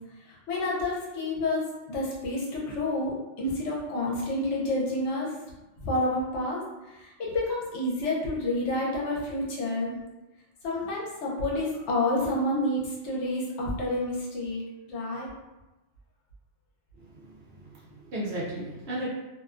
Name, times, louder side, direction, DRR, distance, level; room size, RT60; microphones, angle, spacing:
voice 1, 0.2-5.3 5.8-9.9 10.6-14.6 14.9-15.3, left 1 dB, 70° left, -4 dB, 1.0 m, -29 dB
voice 2, 17.0-19.1, right 1 dB, 65° right, -6 dB, 0.8 m, -36 dB
2.6 x 2.2 x 2.4 m, 1.0 s
omnidirectional pair, 1.3 m